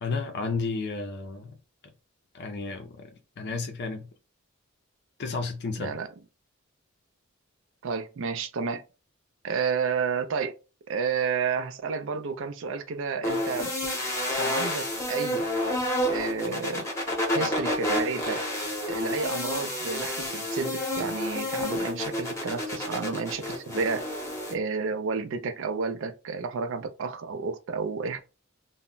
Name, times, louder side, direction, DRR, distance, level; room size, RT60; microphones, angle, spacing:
voice 1, 0.0-1.6 2.3-3.1 3.4-4.1 5.2-6.0, left 4 dB, 55° left, 0.4 m, -32 dB
voice 2, 7.8-8.8 9.4-10.6 10.9-13.7 14.3-15.4 16.1-16.9 17.3-18.4 18.9-24.1 24.5-28.2, right 5 dB, 65° right, 0.4 m, -31 dB
sound 1, 13.2-24.5, left 1 dB, 15° left, 0.7 m, -29 dB
2.1 x 2.0 x 3.7 m
head